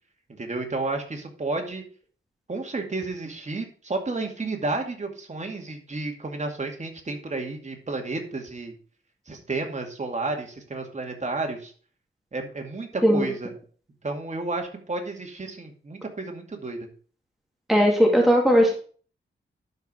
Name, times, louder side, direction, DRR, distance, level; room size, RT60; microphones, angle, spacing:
voice 1, 0.4-1.8 2.5-8.7 9.3-11.7 12.3-13.5 14.0-16.9, right 3 dB, 35° right, 3 dB, 2.3 m, -31 dB
voice 2, 17.7-18.7, equal, ahead, 0 dB, 2.5 m, -18 dB
12.0 x 4.9 x 4.9 m, 0.43 s
wide cardioid pair, 100°, 21 cm